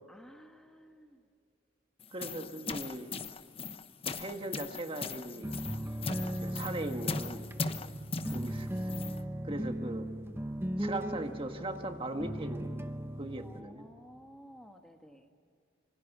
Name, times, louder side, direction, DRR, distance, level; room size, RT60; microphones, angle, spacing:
voice 1, 0.1-1.2 7.7-8.0 13.4-15.3, equal, 5° left, 4 dB, 1.3 m, -54 dB
sound 1, 2.0-9.2, left 4 dB, 30° left, 0.9 m, -39 dB
voice 2, 2.1-3.1 4.0-5.6 6.2-7.5 8.3-8.9 9.4-10.1 10.8-12.8 13.2-13.9, right 1 dB, 30° right, 5 dB, 1.7 m, -39 dB
sound 2, 5.4-13.6, right 1 dB, 15° right, 0.9 m, -38 dB
26.5 x 25.0 x 6.1 m, 2.3 s
head